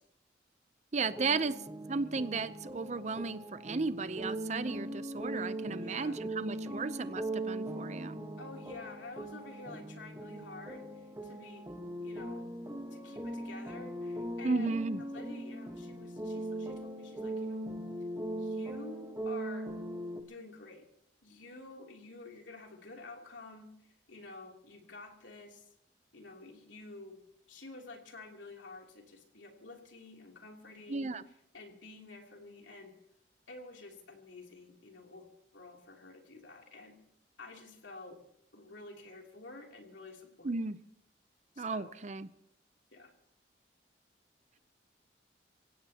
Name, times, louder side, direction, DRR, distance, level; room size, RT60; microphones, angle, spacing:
voice 1, 0.9-1.5 1.9-8.2 14.4-15.0 30.9-31.2 40.4-40.8 41.6-42.3, right 4 dB, 40° right, 13 dB, 0.6 m, -34 dB
sound 1, 1.0-20.2, right 1 dB, 15° right, 1.3 m, -40 dB
voice 2, 5.6-6.2 6.6-6.7 8.4-11.7 12.0-12.5 12.9-14.7 15.1-17.7 18.4-19.7 20.2-20.8 21.2-25.7 26.1-27.2 27.5-32.9 33.5-35.3 35.5-37.0 37.4-38.2 38.5-40.5 41.5-41.9 42.9-43.1, left 3 dB, 85° left, 1 dB, 3.0 m, -50 dB
27.0 x 16.0 x 2.9 m, 0.72 s
head